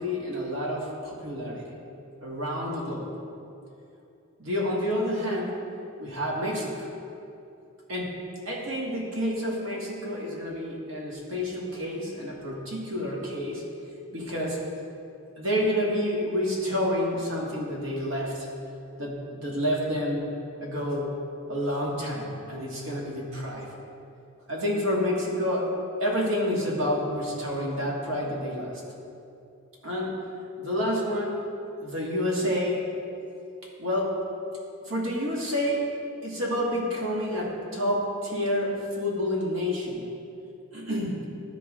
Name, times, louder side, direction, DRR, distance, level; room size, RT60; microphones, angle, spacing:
voice 1, 0.0-1.6 2.2-3.0 4.4-5.6 6.0-6.9 7.9-8.1 8.4-13.6 14.1-14.6 15.4-18.5 19.0-20.3 20.6-21.1 21.5-23.7 24.5-25.7 26.0-28.8 29.8-30.2 30.6-31.5 31.8-32.8 33.8-34.2 34.8-35.9 36.2-40.1 40.7-41.3, equal, 75° right, -3 dB, 1.6 m, -29 dB
12.5 x 4.5 x 3.6 m, 2.6 s
head